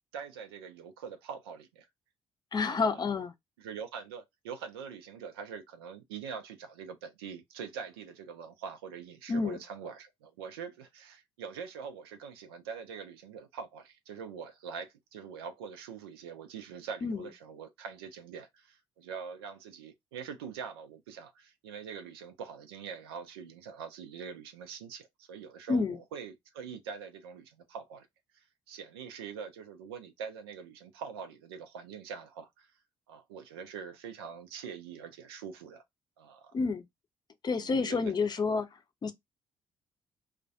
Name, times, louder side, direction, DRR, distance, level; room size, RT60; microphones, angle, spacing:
voice 1, 0.1-1.9 2.5-3.1 3.6-28.1 28.3-32.7 33.1-35.8 36.2-36.6 37.6-38.5, right 6 dB, 80° right, 0.4 m, -44 dB
voice 2, 2.5-3.3 9.3-9.6 17.0-17.2 25.7-26.0 36.5-36.8 37.4-38.7 39.0-39.1, left 4 dB, 35° left, 0.6 m, -29 dB
2.2 x 2.1 x 2.6 m
figure-of-eight pair, 45°, 13 cm